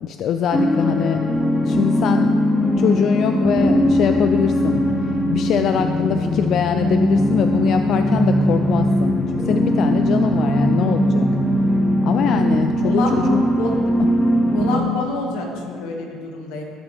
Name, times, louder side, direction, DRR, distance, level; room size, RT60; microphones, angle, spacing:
voice 1, 0.0-2.4 2.6-4.8 5.3-11.3 12.0-13.4 14.0-14.1, left 7 dB, 55° left, 7 dB, 0.4 m, -23 dB
sound 1, 0.5-14.8, equal, 10° left, 1.0 m, -19 dB
voice 2, 12.8-13.2 13.6-13.9 14.5-16.6, left 3 dB, 85° left, 1 dB, 1.9 m, -27 dB
19.5 x 7.2 x 3.5 m, 2.3 s
cardioid pair, 115°, 0 cm